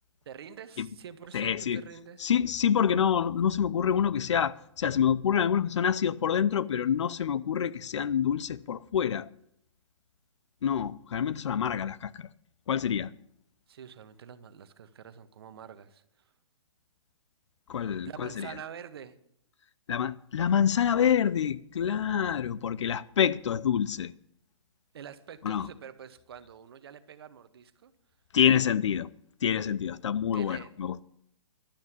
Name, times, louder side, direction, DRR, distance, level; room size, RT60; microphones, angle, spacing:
voice 1, 0.3-2.3 13.7-16.0 18.0-19.1 24.9-27.9 30.3-30.7, right 8 dB, 55° right, 1.1 m, -46 dB
voice 2, 1.3-1.8 2.2-9.3 10.6-12.3 12.7-13.1 17.7-18.5 19.9-24.1 25.4-25.7 28.3-29.1 29.4-31.0, left 8 dB, 70° left, 0.6 m, -27 dB
12.0 x 7.2 x 9.4 m
hypercardioid pair, 165°, 16 cm